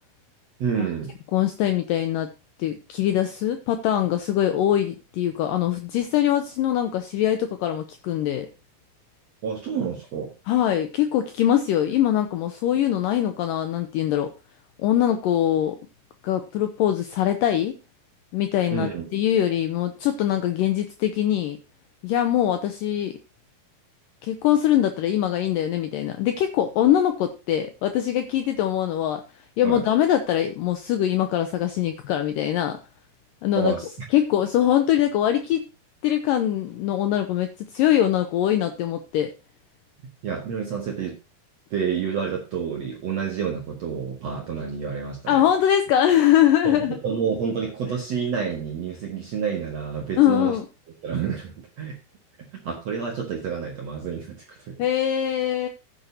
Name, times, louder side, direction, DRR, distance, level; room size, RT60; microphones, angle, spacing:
voice 1, 0.6-1.1 9.4-10.3 18.7-19.0 29.6-29.8 33.6-33.9 40.2-41.2 41.7-45.4 46.6-50.6 51.0-52.0 52.5-54.8, right 6 dB, 55° right, 0 dB, 2.2 m, -29 dB
voice 2, 1.3-2.3 2.6-8.5 10.5-14.3 14.8-15.8 16.2-17.8 18.3-21.6 22.0-23.2 24.2-32.8 33.4-33.7 34.1-35.6 36.0-39.3 45.3-47.0 50.2-50.7 54.8-55.7, left 11 dB, 75° left, 7 dB, 2.1 m, -22 dB
15.0 x 9.1 x 2.8 m, 0.28 s
omnidirectional pair, 4.6 m